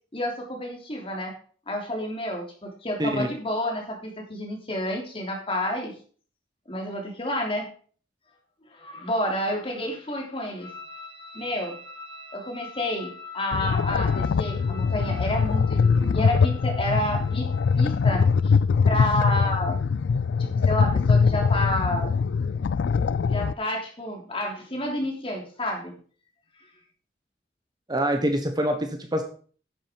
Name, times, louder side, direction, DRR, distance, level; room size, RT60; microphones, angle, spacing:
voice 1, 0.1-1.3 1.7-5.9 6.7-7.7 8.7-10.7 11.3-11.8 12.3-17.5 17.7-18.5 18.8-19.8 20.4-22.1 23.3-25.9, left 1 dB, 30° left, 1 dB, 3.3 m, -30 dB
sound 1, 10.6-18.5, left 4 dB, 55° left, 4.7 m, -44 dB
sound 2, 13.5-23.5, left 5 dB, 80° left, 0.4 m, -22 dB
voice 2, 27.9-29.2, equal, 25° right, 6 dB, 1.2 m, -25 dB
10.5 x 7.5 x 5.1 m, 0.43 s
head